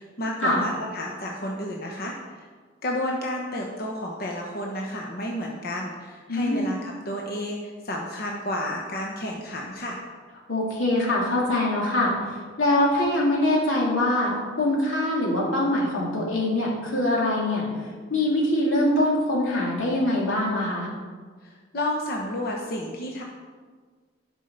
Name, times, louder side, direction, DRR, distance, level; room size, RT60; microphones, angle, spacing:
voice 1, 0.0-2.5 2.8-6.8 7.0-7.6 7.8-10.0 21.4-23.2, left 1 dB, 50° left, -1 dB, 1.0 m, -31 dB
voice 2, 6.3-6.7 10.5-12.1 12.6-17.7 18.1-20.9, left 1 dB, 90° left, -4 dB, 3.1 m, -23 dB
12.0 x 5.4 x 5.7 m, 1.5 s
head